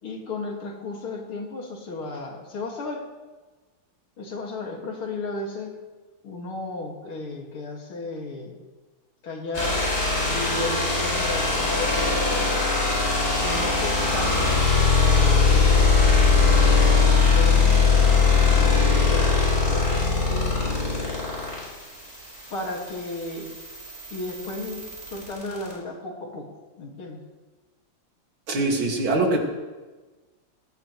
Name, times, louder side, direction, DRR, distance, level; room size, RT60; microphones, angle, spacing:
voice 1, 0.0-3.1 4.2-5.8 6.2-8.5 9.2-9.9 10.3-12.6 13.4-14.9 15.2-16.6 17.3-20.8 22.5-23.6 24.1-27.2, left 2 dB, 80° left, 0 dB, 3.1 m, -34 dB
sound 1, 9.5-25.7, left 4 dB, 30° left, 5.1 m, -21 dB
voice 2, 28.5-29.4, right 2 dB, 70° right, 0 dB, 3.2 m, -22 dB
20.0 x 17.0 x 3.2 m, 1.3 s
omnidirectional pair, 2.3 m